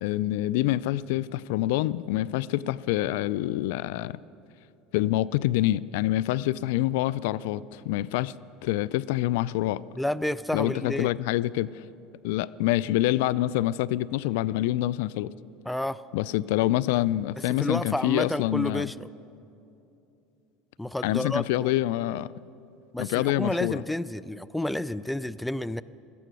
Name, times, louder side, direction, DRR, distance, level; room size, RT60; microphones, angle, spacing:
voice 1, 0.0-4.2 4.9-8.3 8.6-9.8 10.5-11.8 12.2-15.3 16.1-18.9 21.0-22.3 23.0-23.8, left 15 dB, 75° left, 20 dB, 0.3 m, -26 dB
voice 2, 10.0-11.1 15.7-16.0 17.5-19.1 20.8-21.7 22.9-25.8, left 1 dB, 5° left, 17 dB, 0.4 m, -30 dB
17.0 x 14.0 x 6.3 m, 2.8 s
supercardioid pair, 120°, 0 cm